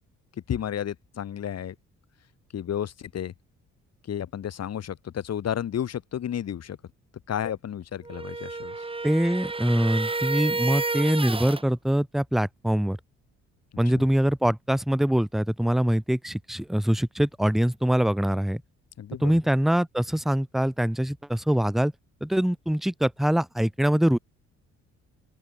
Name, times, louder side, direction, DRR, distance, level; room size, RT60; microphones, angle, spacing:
voice 1, 0.5-1.8 2.5-3.3 4.0-6.8 7.3-8.8 13.9-14.0 19.0-19.4, left 9 dB, 55° left, 2.2 m, -32 dB
sound 1, 8.0-11.6, right 3 dB, 20° right, 2.1 m, -30 dB
voice 2, 9.0-13.0 13.8-18.6 19.2-21.9 22.2-24.2, equal, ahead, 0.5 m, -24 dB
open air
cardioid pair, 90°, 30 cm